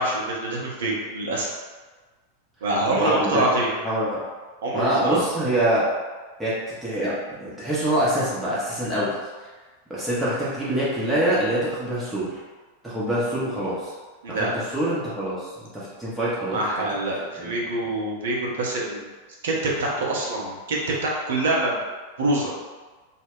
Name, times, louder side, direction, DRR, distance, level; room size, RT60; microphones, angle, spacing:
voice 1, 0.0-1.5 2.6-3.7 4.6-5.2 14.2-14.5 16.5-19.1 19.4-21.8 22.2-22.5, right 2 dB, 60° right, -3 dB, 0.7 m, -25 dB
voice 2, 2.8-4.2 4.7-5.9 6.4-9.1 9.9-12.3 12.8-13.9 14.3-15.5 15.7-16.6 17.4-17.7, right 1 dB, 10° right, -9 dB, 0.7 m, -25 dB
2.3 x 2.2 x 3.5 m, 1.3 s
figure-of-eight pair, 90°, 0 cm